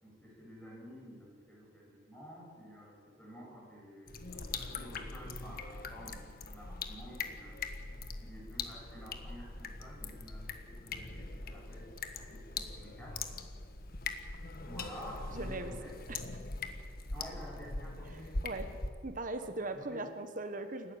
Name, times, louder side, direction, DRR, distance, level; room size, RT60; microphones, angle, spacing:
voice 1, 0.0-7.6 8.2-13.2 14.6-15.9 17.1-18.3 19.4-20.0, equal, 5° left, -3 dB, 7.6 m, -51 dB
sound 1, 4.1-18.9, left 3 dB, 50° left, 1.5 m, -42 dB
voice 2, 15.3-15.7 16.1-16.4 18.1-18.7 19.0-21.0, right 2 dB, 45° right, 8 dB, 1.4 m, -40 dB
29.0 x 12.5 x 8.9 m, 2.1 s
head